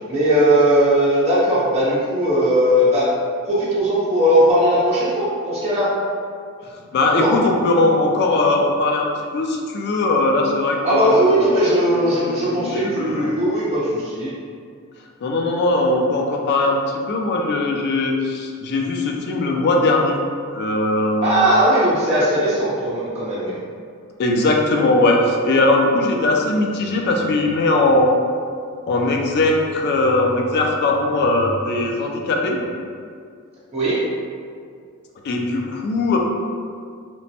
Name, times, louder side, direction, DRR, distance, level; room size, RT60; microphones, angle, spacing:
voice 1, 0.1-3.1 3.4-5.9 7.1-7.4 10.8-14.3 21.2-23.5 33.7-34.0, equal, 30° right, -11 dB, 0.7 m, -18 dB
voice 2, 6.6-11.5 12.5-13.3 15.2-16.8 17.1-20.2 20.5-21.5 24.2-28.1 28.9-32.6 35.2-36.2, left 2 dB, 50° left, 1 dB, 0.3 m, -19 dB
3.0 x 2.1 x 2.7 m, 2.2 s
head